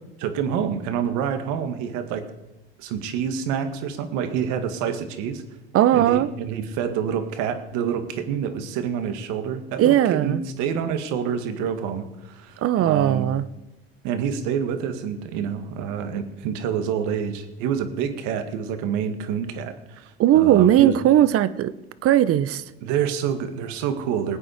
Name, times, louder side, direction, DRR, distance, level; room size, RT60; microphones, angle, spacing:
voice 1, 0.2-2.2 2.8-5.4 5.9-13.3 14.0-21.0 22.8-24.4, right 8 dB, 65° right, 9 dB, 1.8 m, -27 dB
voice 2, 5.7-6.3 9.8-10.4 12.6-13.4 20.2-21.7 22.0-22.6, right 12 dB, 45° right, 17 dB, 0.9 m, -18 dB
20.0 x 9.0 x 5.0 m, 1.0 s
hypercardioid pair, 80°, 31 cm